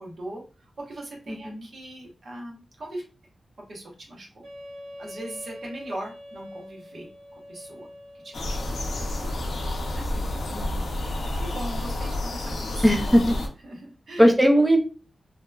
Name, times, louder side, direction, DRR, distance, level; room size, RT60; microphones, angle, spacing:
voice 1, 0.0-3.0 3.7-4.4 5.0-7.9 8.2-8.8 9.9-10.0 11.5-12.8 13.6-14.3, right 1 dB, 60° right, -1 dB, 0.8 m, -39 dB
voice 2, 1.3-1.6 10.2-10.3 10.5-10.9 12.8-13.4 14.2-14.8, equal, 5° right, 3 dB, 0.4 m, -19 dB
Wind instrument woodwind instrument, 4.4-9.5, left 1 dB, 75° right, 1.1 m, -44 dB
sound 1, 8.3-13.5, left 1 dB, 75° left, 0.5 m, -29 dB
2.8 x 2.1 x 2.2 m, 0.34 s
wide cardioid pair, 120°, 0 cm